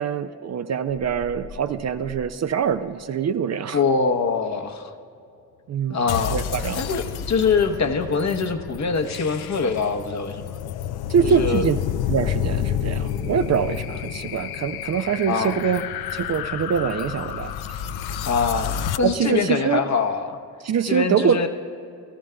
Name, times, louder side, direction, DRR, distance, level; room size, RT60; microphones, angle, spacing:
voice 1, 0.0-3.8 5.7-6.0 6.3-6.8 11.1-11.8 12.1-15.8 16.1-17.8 19.0-19.8 20.6-21.4, right 7 dB, 45° right, 11 dB, 0.5 m, -24 dB
sound 1, 0.9-3.3, left 3 dB, 15° left, 0.8 m, -44 dB
voice 2, 3.7-4.9 5.9-6.4 6.7-10.4 11.2-11.6 15.3-15.6 18.2-20.4 20.9-21.5, left 5 dB, 45° left, 7 dB, 0.9 m, -23 dB
sound 2, 6.1-19.0, left 10 dB, 70° left, 0.5 m, -30 dB
14.5 x 13.0 x 2.2 m, 2.5 s
hypercardioid pair, 40°, 39 cm